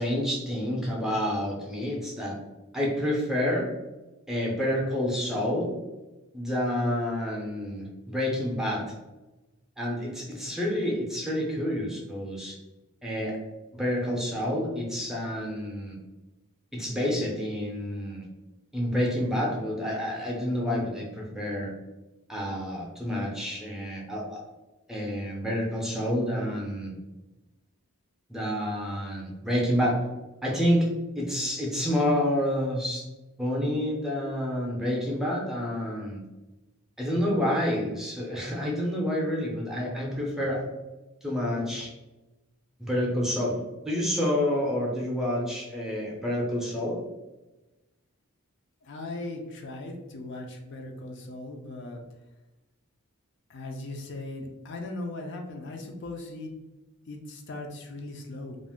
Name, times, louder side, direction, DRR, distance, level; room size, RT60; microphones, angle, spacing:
voice 1, 0.0-2.4 2.7-3.7 4.3-5.7 6.3-8.8 9.8-12.6 13.0-13.4 13.7-16.0 16.7-18.2 18.7-21.7 22.3-24.4 24.9-26.9 28.3-30.0 30.4-33.0 33.4-36.2 37.0-40.7 41.2-41.9 42.8-43.6 43.8-47.0, equal, ahead, -3 dB, 0.5 m, -28 dB
voice 2, 48.8-52.0 53.5-56.6 57.1-58.6, left 2 dB, 50° left, 3 dB, 0.4 m, -38 dB
2.5 x 2.0 x 3.5 m, 1.1 s
head